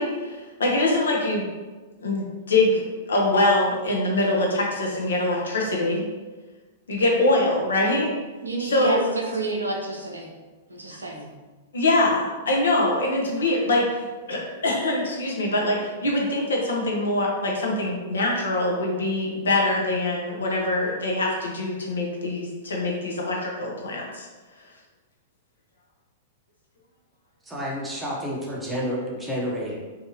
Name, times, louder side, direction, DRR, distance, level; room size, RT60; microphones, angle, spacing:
voice 1, 0.0-1.5 2.0-2.8 3.1-6.0 6.9-8.1 8.6-9.1 11.7-24.3, left 2 dB, 75° left, -1 dB, 0.7 m, -23 dB
voice 2, 8.4-10.3 10.7-11.3, right 2 dB, 90° right, -1 dB, 0.5 m, -29 dB
voice 3, 27.5-29.8, equal, 10° right, -4 dB, 0.6 m, -29 dB
2.6 x 2.4 x 2.8 m, 1.3 s
hypercardioid pair, 105°, 0 cm